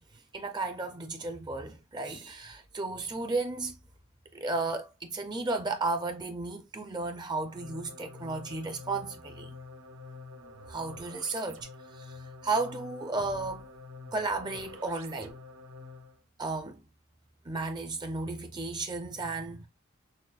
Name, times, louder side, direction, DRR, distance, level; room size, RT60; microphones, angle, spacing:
voice 1, 0.3-3.7 4.3-9.5 10.7-13.6 14.1-15.3 16.4-16.8 17.5-19.7, right 3 dB, 20° right, 0.4 m, -34 dB
sound 1, 7.4-16.2, left 2 dB, 70° right, 0.6 m, -47 dB
6.2 x 2.1 x 2.3 m
head